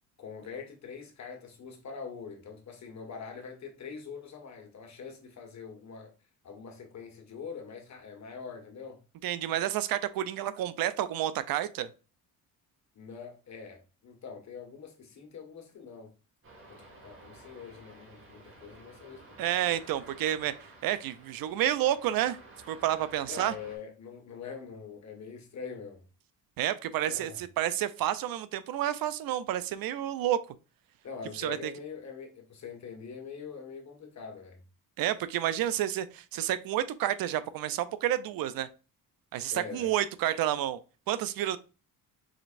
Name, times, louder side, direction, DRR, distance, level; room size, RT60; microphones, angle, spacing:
voice 1, 0.2-6.1 6.4-9.0 12.9-16.1 16.7-19.3 23.3-26.0 27.1-27.4 31.0-34.6 39.5-39.9, left 6 dB, 45° left, 1.5 m, -44 dB
voice 2, 9.2-11.9 19.4-20.5 20.8-22.4 22.7-23.5 26.6-30.4 31.4-31.7 35.0-38.7 39.3-40.8 41.1-41.6, right 12 dB, 70° right, 0.5 m, -30 dB
sound 1, 16.4-23.8, right 2 dB, 35° right, 1.8 m, -53 dB
5.0 x 4.1 x 2.5 m
cardioid pair, 115°, 37 cm